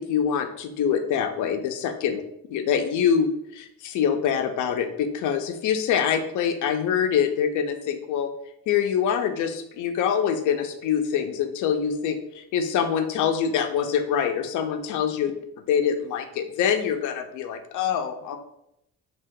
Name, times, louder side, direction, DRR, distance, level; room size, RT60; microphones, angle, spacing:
voice 1, 0.0-2.2 2.5-8.3 8.7-15.3 15.7-18.4, left 8 dB, 80° left, 7 dB, 0.5 m, -25 dB
2.6 x 2.3 x 3.6 m, 0.79 s
cardioid pair, 90°, 30 cm